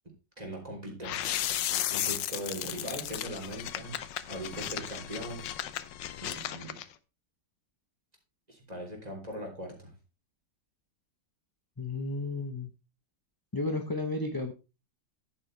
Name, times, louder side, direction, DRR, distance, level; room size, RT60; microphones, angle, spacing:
voice 1, 0.4-1.2 1.9-4.0 4.3-5.4 6.2-6.8 8.5-10.0, right 1 dB, 20° right, 1 dB, 3.6 m, -40 dB
sound 1, 1.0-6.9, left 12 dB, 85° left, 1.4 m, -35 dB
voice 2, 11.8-12.7 13.5-14.5, left 2 dB, 20° left, 5 dB, 0.7 m, -33 dB
11.0 x 8.8 x 3.3 m, 0.29 s
omnidirectional pair, 1.9 m